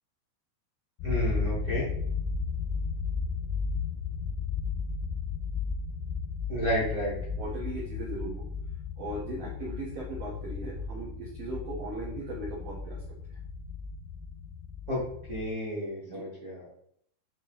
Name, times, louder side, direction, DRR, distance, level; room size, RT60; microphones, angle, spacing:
sound 1, 1.0-15.5, left 5 dB, 75° left, 2.4 m, -34 dB
voice 1, 1.0-1.9 6.5-7.1 14.9-15.0 15.3-16.7, equal, 50° right, -7 dB, 0.8 m, -31 dB
voice 2, 7.4-8.5 9.0-13.0 16.1-16.2, right 1 dB, 85° right, -5 dB, 1.4 m, -38 dB
8.7 x 2.9 x 3.8 m, 0.67 s
omnidirectional pair, 4.7 m